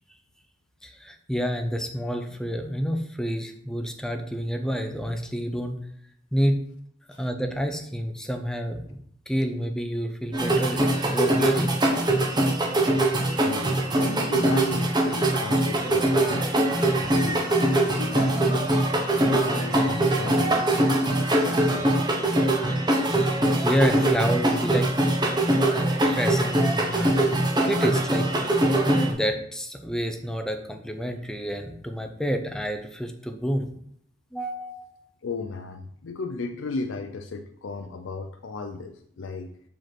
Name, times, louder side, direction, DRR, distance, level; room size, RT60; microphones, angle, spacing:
voice 1, 0.8-5.8 6.3-6.7 7.2-9.0 9.3-10.8 11.1-11.7 17.1-17.2 23.6-24.9 26.1-28.4 28.9-33.7 34.3-35.0, equal, 5° left, 5 dB, 0.6 m, -29 dB
sound 1, 10.3-29.1, right 1 dB, 25° right, 1.0 m, -22 dB
voice 2, 13.4-16.5 17.0-18.7 19.3-20.7 21.2-21.9 35.2-39.6, left 3 dB, 80° left, 5 dB, 0.5 m, -35 dB
5.0 x 4.4 x 6.1 m, 0.67 s
head